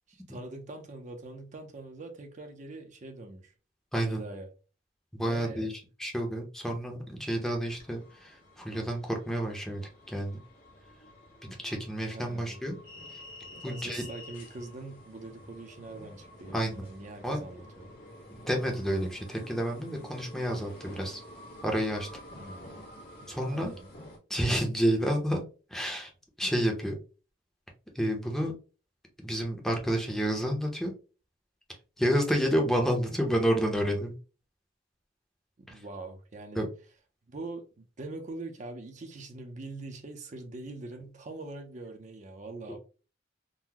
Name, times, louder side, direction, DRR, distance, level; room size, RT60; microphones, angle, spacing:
voice 1, 0.1-3.5 4.0-4.5 5.2-5.7 12.1-12.6 13.6-17.9 22.3-22.8 23.2-23.9 35.6-36.6 37.3-42.8, right 2 dB, 40° right, 0.5 m, -43 dB
voice 2, 3.9-4.2 5.1-5.7 6.0-9.8 10.1-10.4 11.4-12.8 13.6-14.0 16.5-16.8 17.2-17.4 18.3-21.2 21.6-22.1 23.3-23.7 24.3-25.4 25.7-26.1 26.4-26.9 27.9-28.5 29.2-30.9 32.0-34.1 36.5-36.7, equal, ahead, 0.6 m, -29 dB
sound 1, 7.6-24.2, left 1 dB, 55° left, 1.4 m, -49 dB
3.8 x 2.0 x 2.8 m
head